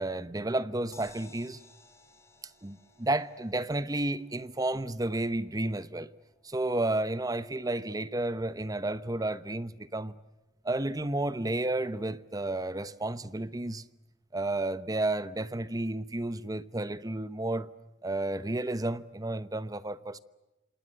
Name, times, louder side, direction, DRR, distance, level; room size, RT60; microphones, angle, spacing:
voice 1, 0.0-1.6 2.6-6.1 6.4-10.1 10.6-13.8 14.3-17.7 18.0-20.2, right 2 dB, 20° right, 0.9 m, -32 dB
sound 1, 0.9-13.1 13.5-13.6 13.9-14.0, left 3 dB, 15° left, 4.0 m, -62 dB
27.5 x 27.0 x 7.7 m
head